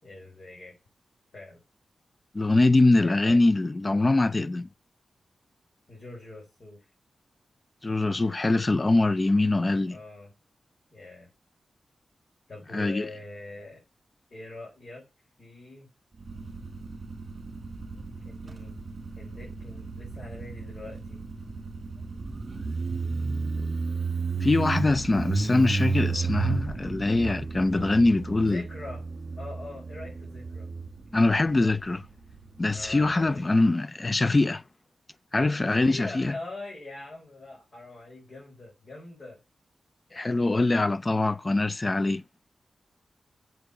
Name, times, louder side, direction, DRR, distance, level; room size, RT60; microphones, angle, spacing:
voice 1, 0.0-0.7 1.3-1.6 3.0-3.4 5.9-6.8 9.9-10.3 10.9-11.3 12.5-13.8 14.3-15.0 15.4-15.9 18.2-18.8 19.1-21.2 28.5-29.0 29.4-30.7 31.4-31.8 32.7-33.4 35.7-39.4, left 2 dB, 50° left, 4.9 m, -43 dB
voice 2, 2.3-4.7 7.8-10.0 12.7-13.1 24.4-28.6 31.1-32.0 32.6-34.6 35.3-36.3 40.1-42.2, left 2 dB, 30° left, 0.4 m, -23 dB
Motorcycle, 16.2-33.4, right 4 dB, 45° right, 2.3 m, -33 dB
7.8 x 5.3 x 7.0 m
wide cardioid pair, 90°, 0 cm